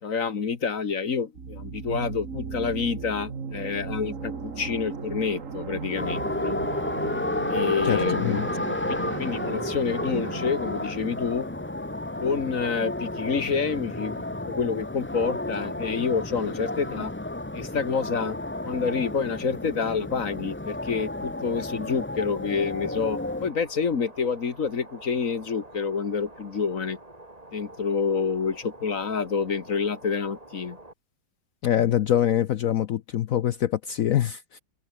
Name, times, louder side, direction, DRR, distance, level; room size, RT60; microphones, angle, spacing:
voice 1, 0.0-6.6 7.5-8.5 8.9-11.5 12.2-17.1 17.5-18.4 18.6-27.0 27.5-30.8, left 5 dB, 45° left, 2.0 m, -28 dB
sound 1, 1.3-12.9, right 5 dB, 45° right, 2.3 m, -36 dB
sound 2, 5.9-23.5, left 2 dB, 15° left, 0.5 m, -32 dB
voice 2, 7.8-8.5 31.6-34.6, left 11 dB, 65° left, 0.9 m, -24 dB
sound 3, 22.5-30.9, right 1 dB, 20° right, 3.6 m, -47 dB
open air
omnidirectional pair, 2.0 m